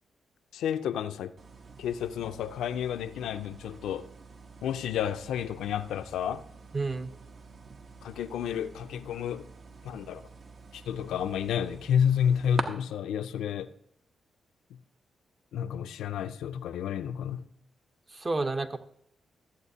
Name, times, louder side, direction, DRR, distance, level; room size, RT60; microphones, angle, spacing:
voice 1, 0.5-1.3 1.8-4.1 4.6-6.4 8.0-9.5 9.8-10.2 10.7-13.7 14.7-14.8 15.5-17.5, left 8 dB, 80° left, 0.4 m, -30 dB
sound 1, 1.4-12.6, right 4 dB, 60° right, 1.0 m, -45 dB
voice 2, 6.7-7.1 18.1-18.8, right 3 dB, 35° right, 0.8 m, -30 dB
14.0 x 8.0 x 2.8 m
hypercardioid pair, 40°, 0 cm